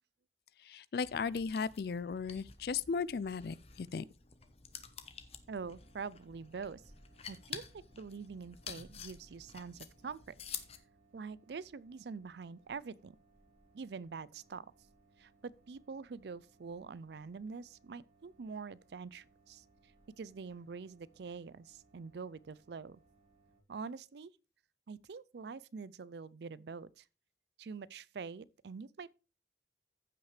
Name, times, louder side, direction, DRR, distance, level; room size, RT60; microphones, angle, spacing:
voice 1, 0.6-4.0, left 5 dB, 60° left, 0.4 m, -36 dB
sound 1, 1.0-10.8, left 7 dB, 35° left, 0.9 m, -50 dB
voice 2, 5.5-6.8 7.3-10.4 11.1-13.1 13.7-14.7 15.2-19.6 20.2-23.0 23.7-24.3 24.9-27.0 27.6-29.1, right 5 dB, 70° right, 0.4 m, -45 dB
sound 2, 5.6-23.6, right 2 dB, 40° right, 3.7 m, -67 dB
14.5 x 5.8 x 3.2 m
head